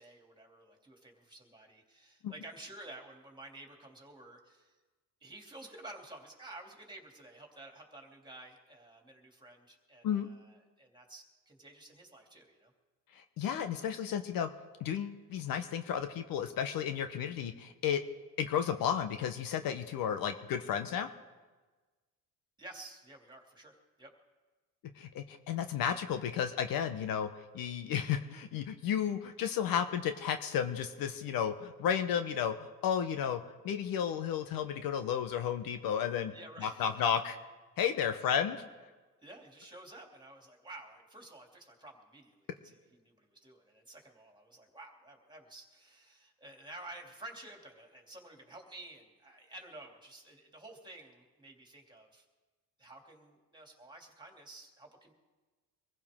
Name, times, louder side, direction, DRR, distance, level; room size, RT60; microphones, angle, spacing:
voice 1, 0.0-4.7 5.2-12.7 22.6-23.7 24.0-24.1 36.3-37.1 39.2-52.2 52.8-55.1, right 2 dB, 10° right, 1 dB, 2.9 m, -51 dB
voice 2, 13.1-14.5 14.8-18.0 18.4-21.1 25.0-27.3 27.5-36.3 36.6-37.4 37.8-38.6, left 8 dB, 65° left, 8 dB, 1.1 m, -33 dB
24.0 x 15.5 x 3.7 m, 1.3 s
cardioid pair, 110°, 38 cm